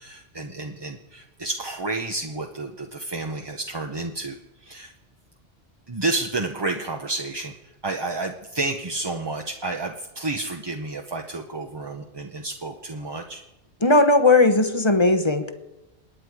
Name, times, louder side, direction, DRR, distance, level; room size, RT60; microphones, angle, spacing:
voice 1, 0.0-4.9 5.9-13.4, right 2 dB, 25° right, 3 dB, 0.7 m, -30 dB
voice 2, 13.8-15.5, left 2 dB, 25° left, 7 dB, 0.9 m, -17 dB
28.5 x 9.6 x 4.8 m, 1.0 s
omnidirectional pair, 1.2 m